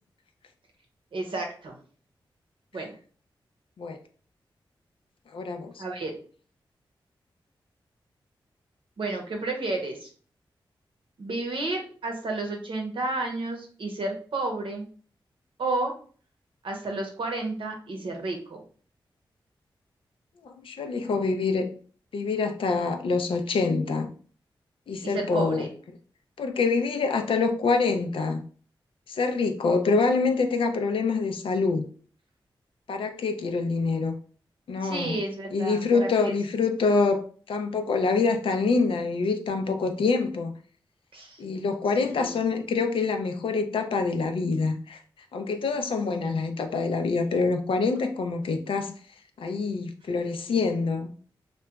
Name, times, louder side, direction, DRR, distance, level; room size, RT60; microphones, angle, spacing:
voice 1, 1.1-1.8 2.7-3.0 5.8-6.1 9.0-10.1 11.2-14.9 15.6-15.9 16.6-18.6 25.0-25.7 34.8-36.3 41.1-41.4 42.2-42.4, right 2 dB, 70° right, 0.7 m, -31 dB
voice 2, 5.3-5.7 20.4-21.7 22.1-24.1 24.9-25.7 26.4-28.4 29.1-31.8 32.9-34.1 34.7-35.2 35.5-40.5 41.4-45.0 45.3-48.9 49.4-51.1, left 4 dB, 75° left, 0.4 m, -26 dB
2.8 x 2.2 x 2.3 m
cardioid pair, 55°, 9 cm